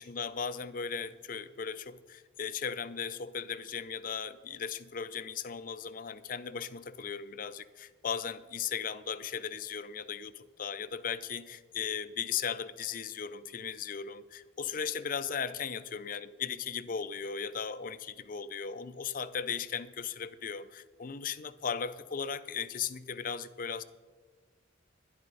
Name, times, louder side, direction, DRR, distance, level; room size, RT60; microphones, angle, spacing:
voice 1, 0.0-23.8, left 7 dB, 45° left, 14 dB, 0.5 m, -37 dB
12.0 x 10.5 x 5.5 m, 1.3 s
head